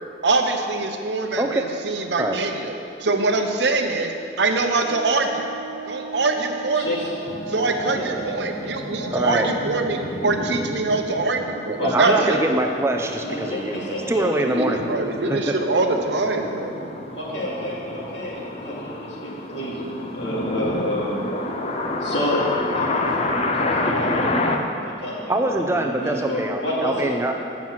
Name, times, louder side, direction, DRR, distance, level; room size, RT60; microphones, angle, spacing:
voice 1, 0.2-2.7 3.0-4.1 4.4-5.5 5.9-6.9 7.5-12.6 14.5-16.9, right 3 dB, 65° right, 4 dB, 0.7 m, -23 dB
voice 2, 1.4-1.7 2.2-2.4 9.1-9.5 11.7-15.6 25.3-27.3, right 1 dB, 15° right, 3 dB, 0.4 m, -24 dB
Brass instrument, 4.8-11.5, right 4 dB, 15° left, 1.3 m, -37 dB
voice 3, 6.7-7.1 7.8-8.1 11.8-12.4 13.2-14.4 17.1-21.3 22.0-22.5 22.7-27.2, left 1 dB, 75° left, -6 dB, 2.3 m, -29 dB
sound 1, 7.3-24.6, left 2 dB, 35° left, 0.5 m, -29 dB
7.5 x 6.1 x 7.2 m, 2.6 s
head